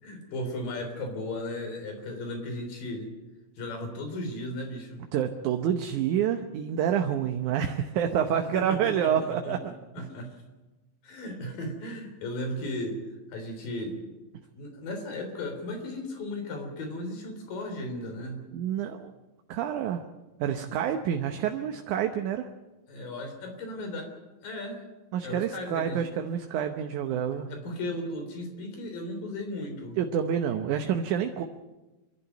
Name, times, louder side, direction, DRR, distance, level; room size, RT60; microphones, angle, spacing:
voice 1, 0.0-3.1 3.6-5.0 8.4-10.3 11.0-13.0 13.3-14.0 14.5-18.5 22.9-24.1 24.4-24.8 25.2-26.0 27.5-30.0 30.7-30.8, left 1 dB, 70° left, 5 dB, 5.2 m, -36 dB
voice 2, 5.1-9.7 10.0-10.1 18.5-19.1 19.5-20.0 20.4-22.5 25.1-27.5 30.0-31.4, right 9 dB, 70° right, 5 dB, 2.2 m, -28 dB
28.0 x 12.0 x 9.2 m, 1.1 s
omnidirectional pair, 4.1 m